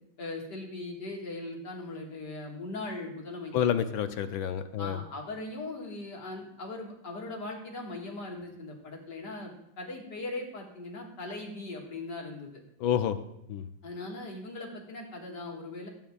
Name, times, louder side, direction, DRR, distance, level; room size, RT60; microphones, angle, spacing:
voice 1, 0.2-3.5 4.8-12.5 13.8-15.9, left 2 dB, 55° left, -1 dB, 2.3 m, -39 dB
voice 2, 3.5-5.0 12.8-13.2 13.5-13.7, left 9 dB, 75° left, 10 dB, 1.4 m, -28 dB
15.0 x 8.9 x 2.4 m, 0.82 s
omnidirectional pair, 2.3 m